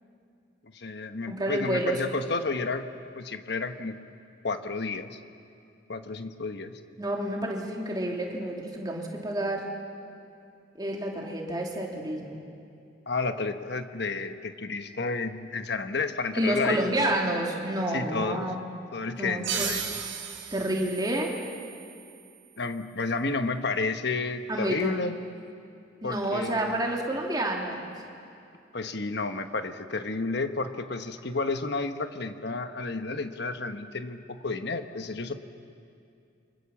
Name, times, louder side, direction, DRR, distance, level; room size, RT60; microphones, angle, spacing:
voice 1, 0.7-2.9 3.2-4.0 4.4-5.2 5.9-6.8 13.1-17.0 17.9-18.5 18.9-20.0 22.6-25.2 26.0-26.8 28.7-35.3, left 3 dB, 55° left, 8 dB, 1.2 m, -31 dB
voice 2, 1.3-2.0 7.0-9.6 10.7-12.4 16.3-18.6 19.2-19.8 20.5-21.3 24.5-25.0 26.0-27.9, right 1 dB, 20° right, -1 dB, 3.1 m, -29 dB
sound 1, 19.4-22.7, right 7 dB, 75° right, 4.2 m, -36 dB
29.0 x 25.0 x 7.3 m, 2.5 s
head